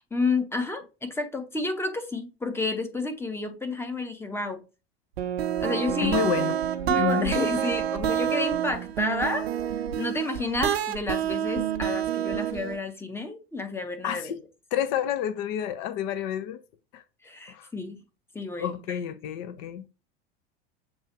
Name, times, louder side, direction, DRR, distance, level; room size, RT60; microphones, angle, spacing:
voice 1, 0.1-4.6 5.6-6.2 6.9-9.5 10.0-14.3 17.2-18.0 18.3-19.0, left 3 dB, 5° left, 0.8 m, -30 dB
sound 1, 5.2-12.8, right 10 dB, 70° right, 0.6 m, -28 dB
voice 2, 6.0-6.6 7.0-7.4 14.0-14.4 14.7-16.6 16.9-17.0 17.5-17.7 18.6-19.9, left 10 dB, 45° left, 0.6 m, -29 dB
7.0 x 2.4 x 3.0 m
figure-of-eight pair, 80°, 32 cm